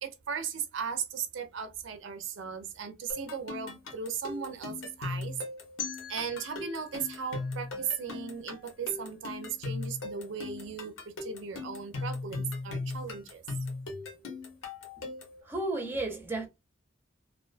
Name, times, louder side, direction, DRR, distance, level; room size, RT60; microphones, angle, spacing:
voice 1, 0.0-5.4 6.1-10.9 11.2-13.4, right 7 dB, 65° right, 0.4 m, -37 dB
sound 1, 3.1-15.4, left 3 dB, 80° left, 0.9 m, -38 dB
sound 2, 5.8-8.7, left 8 dB, 55° left, 0.5 m, -44 dB
voice 2, 15.4-16.5, right 2 dB, 10° right, 0.5 m, -32 dB
2.4 x 2.2 x 2.4 m
head